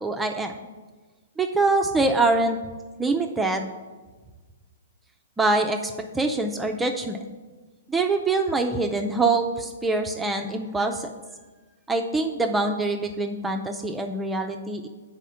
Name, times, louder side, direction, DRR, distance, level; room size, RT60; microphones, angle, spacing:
voice 1, 0.0-0.5 1.4-2.6 3.0-3.7 5.4-7.2 7.9-11.1 11.9-14.9, right 3 dB, 10° right, 3 dB, 0.4 m, -24 dB
7.2 x 4.2 x 5.6 m, 1.3 s
hypercardioid pair, 135°, 0 cm